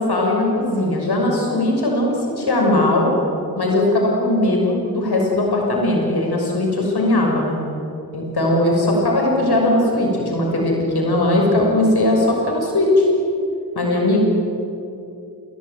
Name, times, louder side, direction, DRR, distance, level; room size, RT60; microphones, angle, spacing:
voice 1, 0.0-3.1 3.6-7.6 8.1-13.1 13.7-14.2, left 1 dB, 75° left, 0 dB, 6.2 m, -19 dB
29.0 x 17.0 x 9.3 m, 2.7 s
cardioid pair, 40°, 39 cm